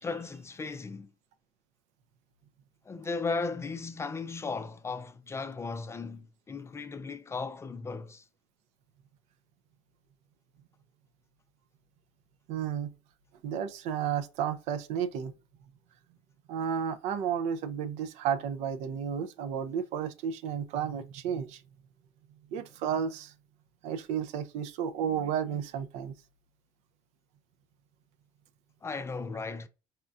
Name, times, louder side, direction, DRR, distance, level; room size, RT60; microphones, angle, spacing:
voice 1, 0.0-1.1 2.9-8.2 28.8-29.7, left 4 dB, 20° left, 0.4 m, -36 dB
voice 2, 12.5-12.9 13.4-15.3 16.5-21.6 22.5-23.3 23.8-26.1, right 8 dB, 70° right, 0.5 m, -32 dB
4.2 x 2.2 x 2.5 m
supercardioid pair, 80°, 12 cm